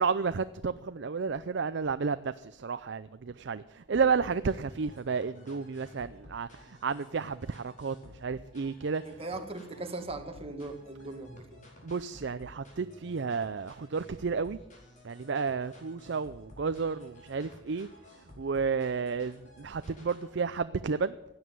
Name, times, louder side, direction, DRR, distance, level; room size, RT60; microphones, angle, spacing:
voice 1, 0.0-9.0 11.8-14.6 15.0-17.9 18.4-21.1, right 5 dB, 60° right, 12 dB, 0.5 m, -32 dB
sound 1, 3.9-20.3, left 1 dB, 40° left, 4.4 m, -54 dB
voice 2, 9.0-11.6, right 2 dB, 30° right, 5 dB, 1.9 m, -39 dB
16.0 x 9.6 x 9.4 m, 0.92 s
head